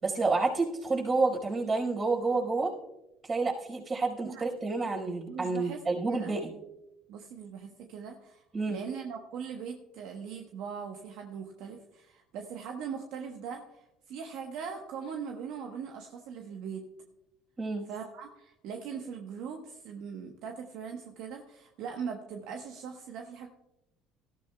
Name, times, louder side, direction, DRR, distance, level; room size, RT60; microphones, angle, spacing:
voice 1, 0.0-2.7 3.2-6.5 8.5-8.8 17.6-17.9, right 3 dB, 30° right, -1 dB, 4.8 m, -29 dB
voice 2, 5.3-6.4 7.1-16.9 17.9-23.5, right 6 dB, 70° right, 3 dB, 1.1 m, -40 dB
18.0 x 13.5 x 2.3 m, 0.90 s
hypercardioid pair, 75°, 0 cm